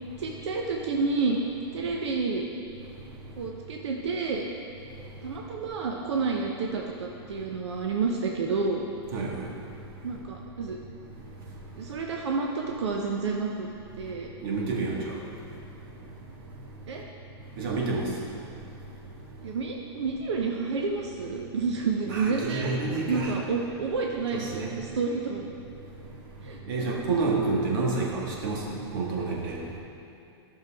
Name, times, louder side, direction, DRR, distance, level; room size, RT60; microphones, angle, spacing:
voice 1, 0.2-1.4 1.7-2.4 3.4-4.5 5.2-8.8 10.0-10.8 11.8-13.7 14.0-14.3 16.9-17.0 19.4-22.7 23.1-25.5 26.4-26.9, right 4 dB, 90° right, 0 dB, 0.8 m, -29 dB
voice 2, 14.4-15.1 17.6-18.0 22.1-23.3 24.3-24.7 26.7-28.6 28.9-29.6, right 3 dB, 55° right, -2 dB, 1.7 m, -28 dB
11.5 x 6.6 x 3.5 m, 2.9 s
supercardioid pair, 150°, 14 cm